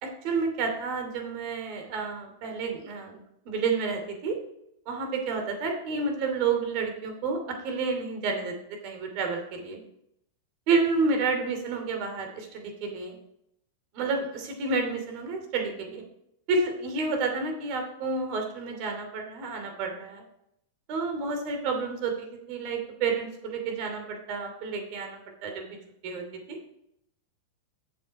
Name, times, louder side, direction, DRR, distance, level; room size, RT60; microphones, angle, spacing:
voice 1, 0.0-4.4 4.9-8.6 8.8-9.8 10.7-13.2 13.9-16.0 16.5-20.2 20.9-25.8 26.0-26.2 26.5-26.6, right 4 dB, 50° right, 4 dB, 2.7 m, -30 dB
8.7 x 7.2 x 4.7 m, 0.76 s
hypercardioid pair, 110°, 0 cm